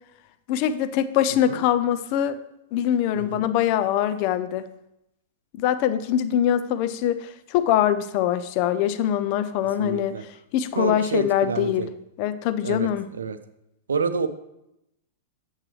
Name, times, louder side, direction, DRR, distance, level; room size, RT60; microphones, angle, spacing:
voice 1, 0.5-2.4 2.7-4.7 5.5-11.9 12.2-13.1, left 10 dB, 45° left, 12 dB, 0.5 m, -23 dB
voice 2, 9.8-10.2 10.8-11.9 12.6-12.9 13.2-13.4 13.9-14.3, right 5 dB, 80° right, 11 dB, 0.6 m, -28 dB
8.7 x 7.4 x 3.2 m, 0.84 s
figure-of-eight pair, 100°, 0 cm